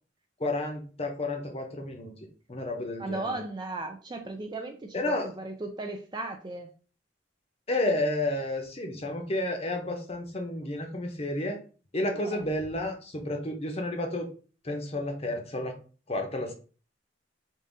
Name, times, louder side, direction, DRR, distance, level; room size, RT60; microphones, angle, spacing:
voice 1, 0.4-2.1 2.5-3.4 4.9-5.3 7.7-11.6 11.9-14.3 14.6-15.7 16.1-16.5, left 1 dB, 35° left, 3 dB, 0.8 m, -31 dB
voice 2, 3.0-6.7 12.1-12.4, right 2 dB, 25° right, 4 dB, 0.4 m, -36 dB
3.6 x 2.6 x 3.9 m, 0.38 s
head